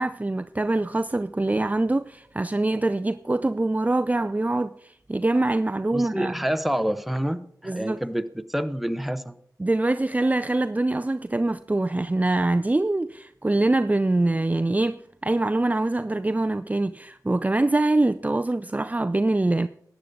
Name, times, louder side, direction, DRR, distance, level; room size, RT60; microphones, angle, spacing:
voice 1, 0.0-6.3 7.6-8.0 9.6-19.7, right 2 dB, 20° right, 0.4 m, -24 dB
voice 2, 5.9-9.4, equal, ahead, 0.9 m, -28 dB
13.5 x 9.1 x 4.0 m
cardioid pair, 45°, 7 cm